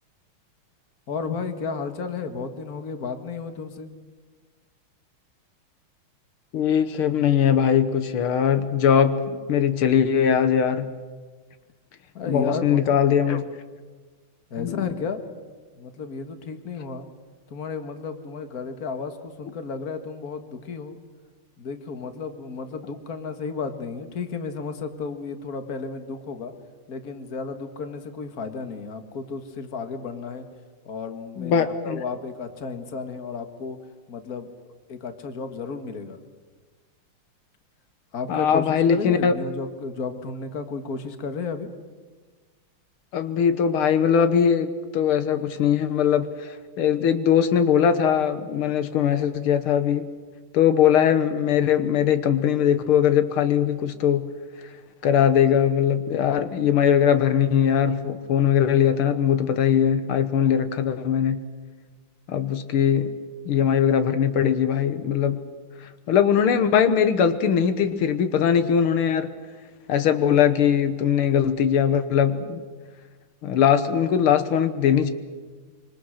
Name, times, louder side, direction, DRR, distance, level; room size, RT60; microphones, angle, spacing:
voice 1, 1.1-3.9 12.1-13.0 14.5-15.2 15.7-17.1 17.5-21.0 21.6-26.5 26.9-30.5 30.9-33.8 34.1-34.5 34.9-36.2 38.1-41.7, left 5 dB, 45° left, 8 dB, 2.0 m, -33 dB
voice 2, 6.5-10.9 12.3-13.4 14.6-14.7 31.4-32.0 38.3-39.3 43.1-50.1 50.5-54.3 55.0-61.4 62.3-63.1 63.5-65.5 65.8-69.3 69.9-72.6 73.4-75.1, left 8 dB, 85° left, 10 dB, 2.0 m, -21 dB
26.0 x 25.0 x 6.5 m, 1.4 s
omnidirectional pair, 2.3 m